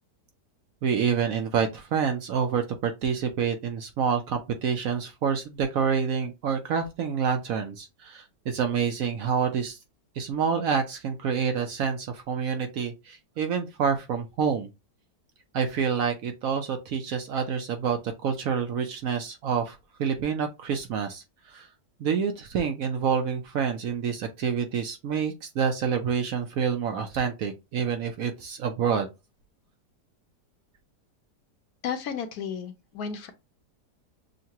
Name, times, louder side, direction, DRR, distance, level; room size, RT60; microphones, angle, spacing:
voice 1, 0.8-9.8 10.2-14.7 15.5-21.7 22.0-29.1, right 6 dB, 65° right, 0.9 m, -27 dB
voice 2, 31.8-33.3, left 7 dB, 65° left, 1.1 m, -33 dB
6.4 x 2.2 x 2.8 m
omnidirectional pair, 1.8 m